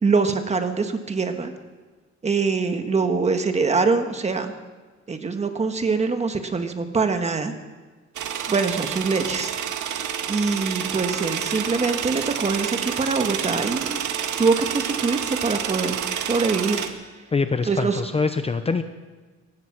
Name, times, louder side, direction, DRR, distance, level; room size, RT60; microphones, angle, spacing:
voice 1, 0.0-1.5 2.2-4.5 5.1-7.5 8.5-9.5 10.3-14.0 14.4-16.8 17.6-18.0, right 4 dB, 25° right, 7 dB, 1.5 m, -24 dB
sound 1, 8.1-16.9, right 8 dB, 85° right, 1.9 m, -29 dB
voice 2, 17.3-18.8, left 4 dB, 20° left, 9 dB, 0.7 m, -24 dB
23.0 x 19.0 x 6.1 m, 1.3 s
cardioid pair, 180°, 29 cm